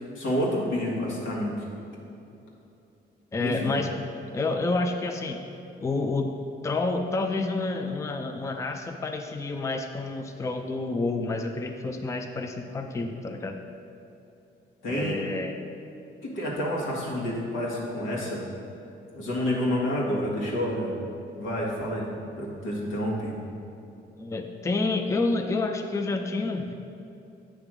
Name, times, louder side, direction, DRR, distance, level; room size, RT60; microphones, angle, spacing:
voice 1, 0.2-1.5 3.4-3.7 14.8-15.2 16.2-18.4 19.1-20.9 21.4-23.4, equal, 85° left, -4 dB, 1.8 m, -29 dB
voice 2, 3.3-3.9 4.3-5.4 5.8-6.4 6.6-13.6 14.9-15.6 24.2-26.7, left 3 dB, 15° left, 5 dB, 0.4 m, -29 dB
8.3 x 3.4 x 6.1 m, 2.8 s
cardioid pair, 90°, 20 cm